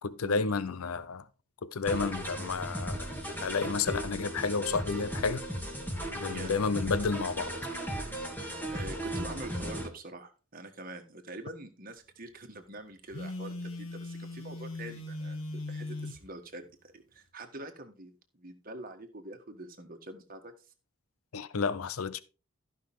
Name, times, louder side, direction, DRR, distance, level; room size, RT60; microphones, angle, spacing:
voice 1, 0.0-1.2 1.6-3.1 3.4-5.4 6.1-7.5 21.3-22.2, left 4 dB, 90° left, 0.6 m, -31 dB
sound 1, 1.9-9.9, right 1 dB, 10° left, 2.3 m, -36 dB
voice 2, 6.3-6.6 8.7-20.5, right 2 dB, 40° right, 1.5 m, -45 dB
Telephone, 13.1-16.2, left 2 dB, 70° left, 1.9 m, -39 dB
14.5 x 5.7 x 3.6 m
head